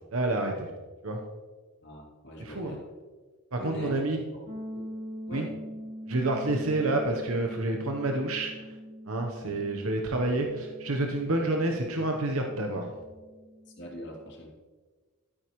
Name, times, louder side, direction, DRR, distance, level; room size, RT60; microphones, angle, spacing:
voice 1, 0.1-0.7 1.0-1.2 2.4-2.8 3.5-4.2 5.3-5.5 6.1-8.6 9.1-12.9, right 2 dB, 75° right, 3 dB, 1.0 m, -29 dB
voice 2, 1.8-2.8 3.6-4.5 4.7-4.8 5.3-5.5 6.5-6.7 9.4-9.6 13.8-14.5, left 1 dB, 55° left, -2 dB, 2.6 m, -42 dB
sound 1, 4.5-14.2, equal, 35° right, 1.4 m, -44 dB
12.5 x 9.2 x 3.1 m, 1.4 s
head